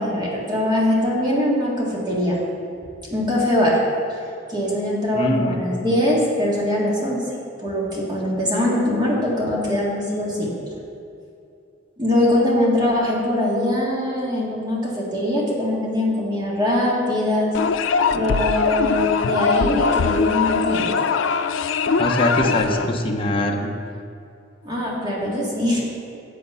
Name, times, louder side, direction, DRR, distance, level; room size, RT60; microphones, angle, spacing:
voice 1, 0.0-2.4 3.1-3.8 4.1-4.2 4.5-7.2 7.6-10.5 12.0-17.5 18.1-20.9 22.4-22.8 24.6-25.8, left 1 dB, 25° right, -4 dB, 1.8 m, -22 dB
voice 2, 5.1-5.6 22.0-23.7, left 1 dB, 30° left, 1 dB, 0.8 m, -22 dB
sound 1, 17.5-22.9, left 5 dB, 85° left, 0.4 m, -21 dB
8.4 x 7.6 x 5.5 m, 2.6 s
head